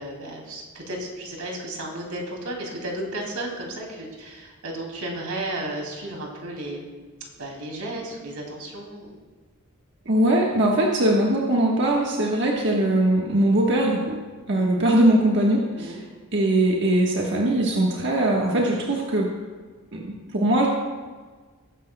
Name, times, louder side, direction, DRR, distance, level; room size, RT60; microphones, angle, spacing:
voice 1, 0.0-7.0 7.4-9.2 14.5-14.7 15.7-16.0, right 1 dB, 85° right, 0 dB, 2.6 m, -34 dB
voice 2, 10.0-14.2 14.5-16.0 16.3-19.3 19.9-20.7, right 1 dB, 55° right, -2 dB, 1.3 m, -21 dB
19.0 x 9.9 x 2.2 m, 1.4 s
head